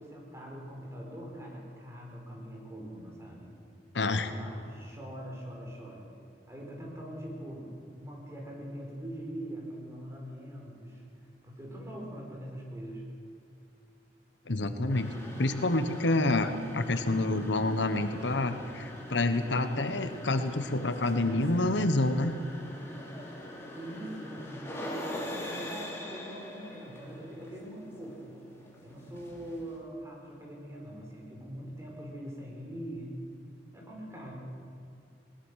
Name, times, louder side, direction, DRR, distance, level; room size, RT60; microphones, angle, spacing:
voice 1, 0.0-3.5 4.0-6.1 6.5-11.0 11.4-13.0 23.7-28.4 28.8-33.2 33.7-34.3, equal, 15° right, -2 dB, 5.1 m, -42 dB
voice 2, 3.9-4.3 14.5-15.1 15.4-22.3, left 2 dB, 85° left, 9 dB, 1.2 m, -28 dB
sound 1, 14.9-29.8, left 1 dB, 15° left, 3.2 m, -43 dB
21.0 x 19.5 x 6.5 m, 2.4 s
head